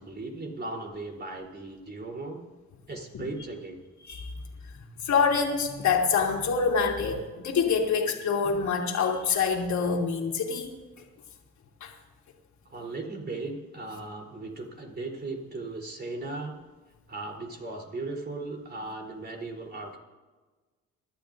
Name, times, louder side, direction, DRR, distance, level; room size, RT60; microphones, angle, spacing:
voice 1, 0.0-2.4 2.9-3.8 12.7-16.6 17.1-20.0, right 2 dB, 35° right, 1 dB, 3.7 m, -37 dB
voice 2, 5.0-10.7 11.8-11.9, left 5 dB, 70° left, 0 dB, 2.9 m, -26 dB
24.5 x 12.0 x 2.6 m, 1.3 s
cardioid pair, 90°, 30 cm